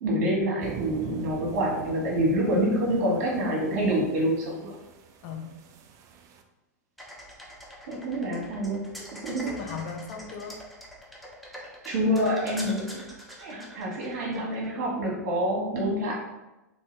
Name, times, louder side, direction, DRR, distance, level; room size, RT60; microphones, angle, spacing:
voice 1, 0.0-4.8 7.9-8.8 9.1-9.6 11.8-13.1 13.4-16.1, equal, 55° right, -2 dB, 1.3 m, -27 dB
sound 1, 0.6-6.4, right 6 dB, 35° right, 0.4 m, -42 dB
voice 2, 1.0-1.3 5.2-5.5 9.1-10.6, left 6 dB, 45° left, 3 dB, 0.5 m, -38 dB
sound 2, 7.0-14.7, equal, ahead, 0.7 m, -44 dB
2.7 x 2.6 x 3.2 m, 0.99 s
hypercardioid pair, 105°, 9 cm